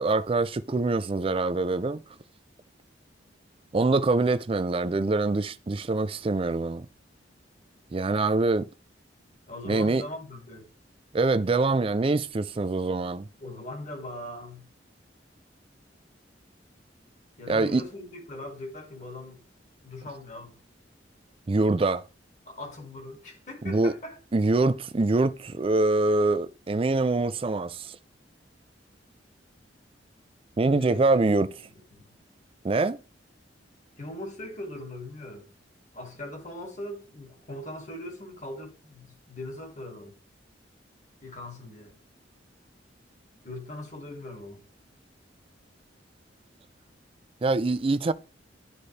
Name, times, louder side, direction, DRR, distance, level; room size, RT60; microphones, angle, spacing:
voice 1, 0.0-2.0 3.7-6.9 7.9-8.7 9.7-10.0 11.1-13.3 17.5-17.8 21.5-22.1 23.6-23.9 24.3-28.0 30.6-31.5 32.6-33.0 47.4-48.1, right 3 dB, 30° right, 0.4 m, -24 dB
voice 2, 9.5-10.7 13.4-14.7 17.4-19.4 19.8-20.6 22.5-24.2 30.6-31.0 31.9-32.2 34.0-35.5 35.9-40.2 41.2-41.9 43.4-44.6, left 1 dB, 40° left, 2.1 m, -40 dB
11.5 x 4.1 x 3.3 m
head